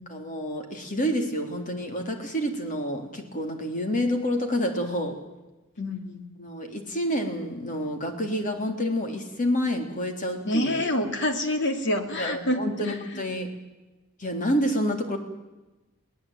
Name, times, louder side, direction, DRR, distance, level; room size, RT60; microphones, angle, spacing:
voice 1, 0.1-5.2 6.4-10.9 12.2-13.5 14.2-15.2, equal, 40° left, 4 dB, 3.6 m, -28 dB
voice 2, 5.8-6.3 10.4-13.2, left 1 dB, 55° left, 6 dB, 2.8 m, -27 dB
22.0 x 18.5 x 9.2 m, 1.1 s
head